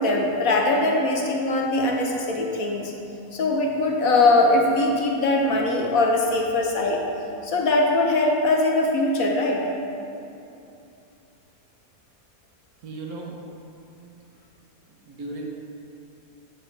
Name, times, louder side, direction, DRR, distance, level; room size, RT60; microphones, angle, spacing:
voice 1, 0.0-2.9 3.3-7.0 7.4-9.6, left 2 dB, 60° left, 0 dB, 1.1 m, -21 dB
voice 2, 12.8-13.4 15.0-15.5, right 2 dB, 60° right, -1 dB, 1.4 m, -35 dB
8.1 x 6.6 x 4.7 m, 2.7 s
omnidirectional pair, 1.9 m